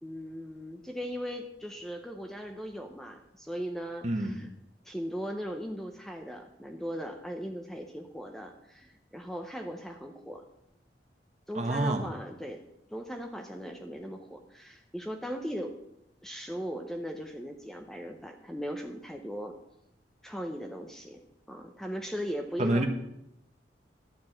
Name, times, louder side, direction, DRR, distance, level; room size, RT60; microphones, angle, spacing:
voice 1, 0.0-4.5 4.8-10.4 11.5-12.6 12.9-15.8 16.2-19.6 20.2-21.2 21.5-22.9, equal, ahead, 4 dB, 0.7 m, -38 dB
voice 2, 4.0-4.4 11.5-12.1 22.6-22.9, right 1 dB, 40° right, 3 dB, 1.2 m, -27 dB
12.0 x 4.6 x 7.5 m, 0.82 s
head